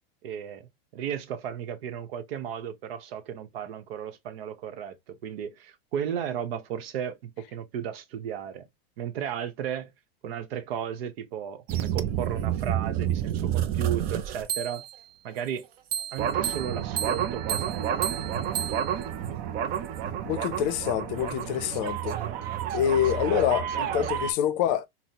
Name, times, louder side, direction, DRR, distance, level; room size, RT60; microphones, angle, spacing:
voice 1, 0.2-8.6 9.0-9.9 10.2-14.8 15.2-15.7 16.1-18.3, right 8 dB, 75° right, 0.8 m, -35 dB
sound 1, 11.7-15.0 15.9-24.3, right 10 dB, 30° right, 0.4 m, -29 dB
voice 2, 20.2-22.2 22.7-24.9, left 10 dB, 50° left, 0.5 m, -26 dB
4.0 x 2.0 x 2.8 m
supercardioid pair, 140°, 30 cm